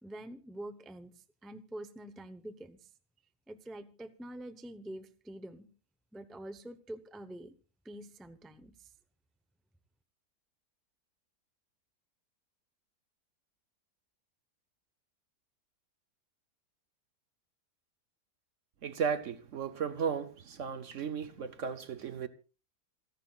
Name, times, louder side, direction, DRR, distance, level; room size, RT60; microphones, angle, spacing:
voice 1, 0.0-2.9 3.5-5.7 6.1-7.5 7.8-8.9, right 1 dB, ahead, 0.5 m, -46 dB
voice 2, 18.8-22.3, right 6 dB, 55° right, 1.0 m, -35 dB
27.5 x 11.0 x 2.4 m
omnidirectional pair, 1.7 m